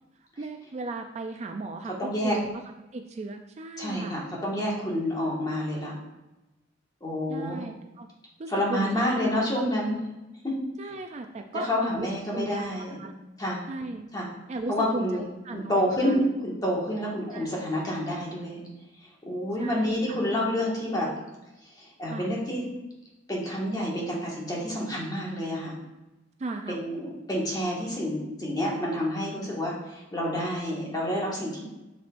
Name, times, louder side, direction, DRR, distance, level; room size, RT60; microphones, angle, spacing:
voice 1, 0.4-2.6 2.9-4.2 7.3-8.1 8.4-9.7 10.8-12.1 12.3-13.1 13.7-14.1 14.5-16.2 17.3-17.5 19.6-20.2 22.1-22.3 26.4-26.8, right 2 dB, 35° right, 5 dB, 0.4 m, -36 dB
voice 2, 2.0-2.4 3.8-5.9 7.0-7.6 8.5-10.0 10.4-10.6 11.7-13.0 13.4-13.6 14.1-14.2 14.7-15.2 15.5-18.6 19.3-21.1 21.8-22.6 23.3-25.7 26.7-31.7, equal, 20° left, -4 dB, 1.7 m, -28 dB
7.4 x 6.1 x 2.5 m, 1.0 s
head